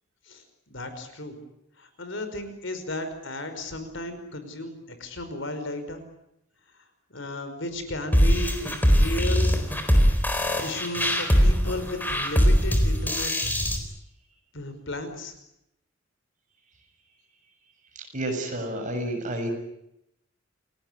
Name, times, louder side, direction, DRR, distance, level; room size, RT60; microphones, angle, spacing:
voice 1, 0.3-1.4 1.8-6.0 7.1-9.5 10.6-13.3 14.5-15.3, left 1 dB, 65° left, 9 dB, 5.2 m, -34 dB
sound 1, 8.1-13.8, equal, 10° left, 4.1 m, -21 dB
voice 2, 18.1-19.5, right 1 dB, 40° right, 4 dB, 7.2 m, -30 dB
29.0 x 18.5 x 10.0 m, 0.82 s
head